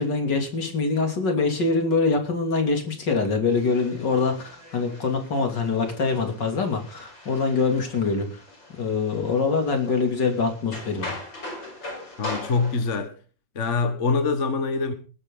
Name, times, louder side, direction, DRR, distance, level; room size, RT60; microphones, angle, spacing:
voice 1, 0.0-8.4 8.7-11.2, left 4 dB, 70° left, 3.6 m, -24 dB
sound 1, 3.5-13.0, left 2 dB, 85° left, 7.1 m, -41 dB
voice 2, 12.2-13.2 13.6-14.9, left 4 dB, 40° left, 1.7 m, -24 dB
20.5 x 10.5 x 3.9 m
omnidirectional pair, 2.0 m